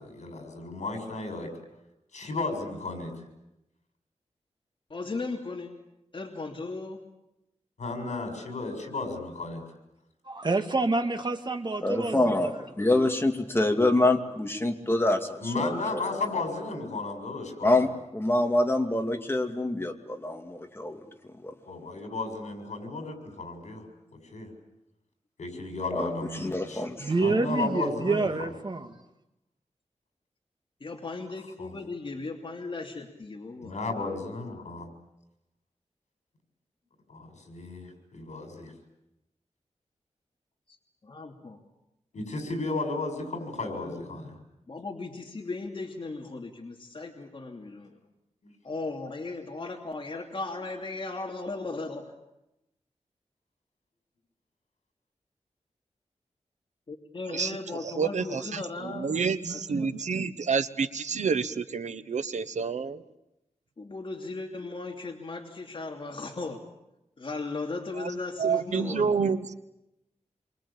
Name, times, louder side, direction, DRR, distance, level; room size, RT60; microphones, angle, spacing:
voice 1, 0.0-1.5 2.1-3.1 7.8-9.6 15.4-17.9 21.6-23.8 24.1-24.5 25.4-26.8 27.2-28.3 31.6-31.7 33.6-34.9 37.1-38.7 42.1-44.4 48.4-48.5, left 3 dB, 75° left, 5 dB, 7.1 m, -34 dB
voice 2, 4.9-5.7 6.1-7.0 30.8-33.8 41.0-41.6 43.7-44.3 44.7-47.9 48.6-52.0 56.9-59.2 59.5-60.3 63.8-66.6 67.2-69.3, left 3 dB, 45° left, 1 dB, 2.9 m, -37 dB
voice 3, 10.3-12.6 27.0-29.0, right 3 dB, 40° right, 5 dB, 2.2 m, -28 dB
voice 4, 11.8-16.0 17.6-21.0 21.4-21.5 25.9-27.1, left 2 dB, 20° left, 4 dB, 2.6 m, -26 dB
voice 5, 57.3-63.0 67.9-68.1 68.4-69.5, right 5 dB, 80° right, 11 dB, 1.3 m, -29 dB
27.5 x 24.0 x 8.7 m, 0.89 s
wide cardioid pair, 105°, 12 cm